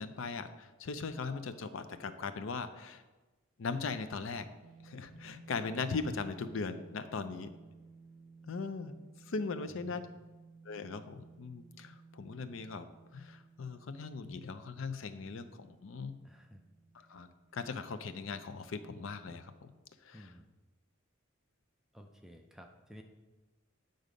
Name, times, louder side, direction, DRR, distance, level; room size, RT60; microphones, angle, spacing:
voice 1, 0.0-3.0 3.6-4.5 4.8-7.5 8.4-9.0 9.3-10.1 10.7-12.8 13.1-16.1 17.1-17.3 17.5-19.5 20.0-20.2, left 4 dB, 65° left, 11 dB, 0.5 m, -39 dB
sound 1, 4.6-19.0, right 4 dB, 75° right, 0.6 m, -58 dB
voice 2, 9.7-10.1 16.2-16.6 20.1-20.5 21.9-23.0, equal, ahead, 3 dB, 0.4 m, -54 dB
8.2 x 3.9 x 5.1 m, 1.2 s
head